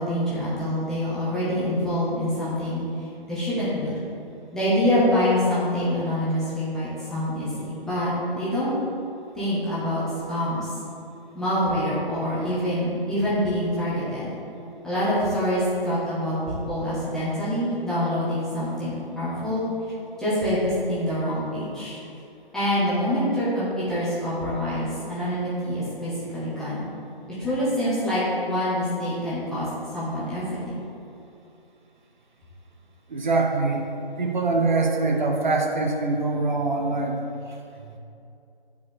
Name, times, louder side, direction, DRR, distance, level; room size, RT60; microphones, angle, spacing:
voice 1, 0.0-2.8 3.3-4.0 4.5-8.7 9.3-10.7 11.3-14.3 14.8-19.7 20.2-22.0 22.5-26.9 27.3-29.7 29.9-30.8, equal, ahead, -12 dB, 0.9 m, -25 dB
voice 2, 33.1-33.9 34.2-38.0, right 3 dB, 50° right, 1 dB, 0.9 m, -24 dB
9.3 x 4.7 x 3.4 m, 2.7 s
figure-of-eight pair, 140°, 30 cm